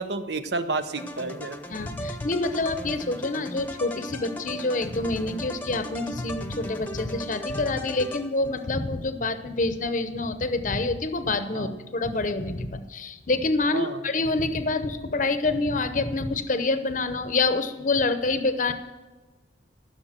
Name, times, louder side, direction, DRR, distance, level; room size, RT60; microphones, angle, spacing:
voice 1, 0.0-1.6 11.5-11.7 13.7-14.0, right 3 dB, 65° right, 10 dB, 0.9 m, -30 dB
sound 1, 0.9-8.7, equal, 10° left, 0.9 m, -38 dB
voice 2, 1.7-18.7, left 3 dB, 45° left, 9 dB, 0.8 m, -27 dB
14.5 x 6.6 x 7.4 m, 1.2 s
head